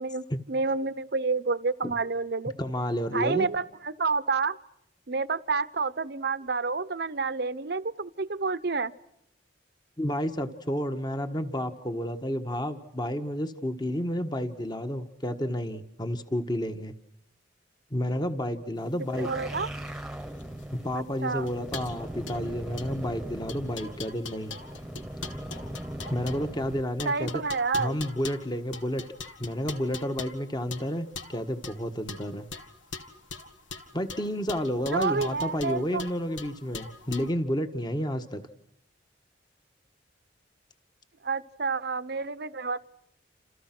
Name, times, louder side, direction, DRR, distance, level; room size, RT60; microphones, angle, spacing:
voice 1, 0.0-2.5 3.1-4.6 5.1-8.9 19.2-19.7 20.9-21.5 27.0-28.0 34.9-36.0 41.2-42.8, right 4 dB, 60° right, 16 dB, 0.9 m, -29 dB
voice 2, 2.6-3.5 10.0-16.9 17.9-19.3 20.7-24.5 26.1-27.4 27.7-29.0 29.4-32.5 33.9-38.4, equal, 25° left, 8 dB, 1.5 m, -31 dB
sound 1, 18.9-37.3, left 4 dB, 90° left, 1.9 m, -43 dB
sound 2, 19.0-26.8, right 1 dB, 5° right, 1.3 m, -39 dB
28.5 x 27.5 x 6.1 m, 0.75 s
head